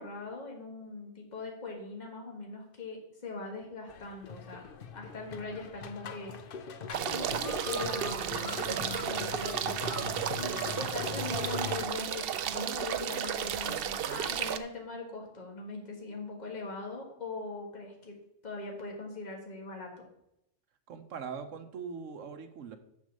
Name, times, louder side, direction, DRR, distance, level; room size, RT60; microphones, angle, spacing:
voice 1, 0.0-4.6 4.9-6.3 7.1-10.0 10.4-12.3 12.5-18.2 18.4-20.1, left 3 dB, 35° left, 0 dB, 1.8 m, -41 dB
sound 1, 3.9-11.9, left 6 dB, 50° left, 0.8 m, -41 dB
sound 2, 6.9-14.6, right 9 dB, 60° right, 0.7 m, -33 dB
voice 2, 20.9-22.8, right 6 dB, 80° right, 9 dB, 1.2 m, -41 dB
7.3 x 6.5 x 6.4 m, 0.80 s
omnidirectional pair, 1.3 m